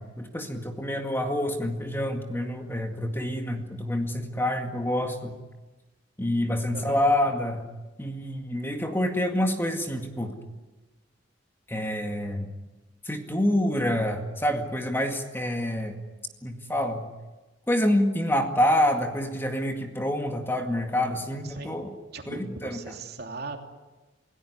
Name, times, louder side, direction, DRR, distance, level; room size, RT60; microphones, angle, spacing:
voice 1, 0.0-5.3 6.2-7.6 8.0-10.4 11.7-12.5 13.1-16.0 16.4-17.1 17.7-21.9 22.3-22.9, left 1 dB, 10° left, 4 dB, 2.0 m, -27 dB
voice 2, 21.4-21.8 22.1-23.6, right 3 dB, 60° right, 3 dB, 2.9 m, -38 dB
28.5 x 17.0 x 9.7 m, 1.2 s
head